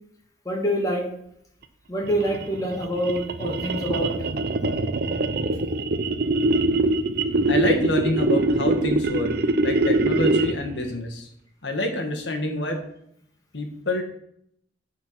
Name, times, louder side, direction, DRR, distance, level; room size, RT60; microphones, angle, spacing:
voice 1, 0.5-1.1 1.9-4.1, equal, 20° left, 0 dB, 1.8 m, -26 dB
sound 1, 2.0-10.7, right 2 dB, 60° right, 0.6 m, -23 dB
voice 2, 7.5-11.3 11.6-12.8 13.5-14.0, left 1 dB, 75° left, 4 dB, 1.6 m, -27 dB
9.4 x 4.6 x 5.8 m, 0.72 s
head